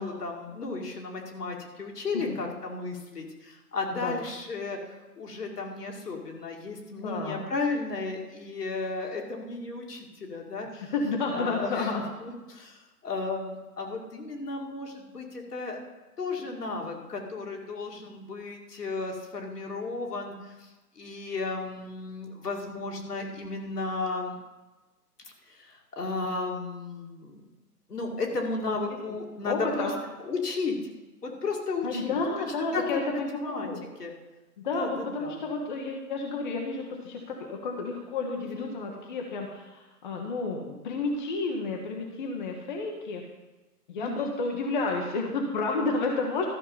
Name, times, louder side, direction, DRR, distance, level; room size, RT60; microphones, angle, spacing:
voice 1, 0.0-4.8 5.2-10.9 11.3-11.9 12.2-15.8 16.2-20.7 21.0-24.4 25.5-27.5 27.9-29.9 30.2-30.8 31.2-32.1 32.7-33.0 33.4-33.7 34.0-34.1 34.7-35.4 38.4-38.7 44.0-44.3, left 3 dB, 75° left, 0 dB, 2.4 m, -34 dB
voice 2, 7.0-7.4 10.7-12.0 26.2-26.5 28.7-28.8 29.1-29.2 29.4-30.0 31.8-33.9 34.6-43.2 43.9-46.5, left 3 dB, 30° left, 1 dB, 1.1 m, -31 dB
13.0 x 6.0 x 5.5 m, 1.1 s
figure-of-eight pair, 150°, 47 cm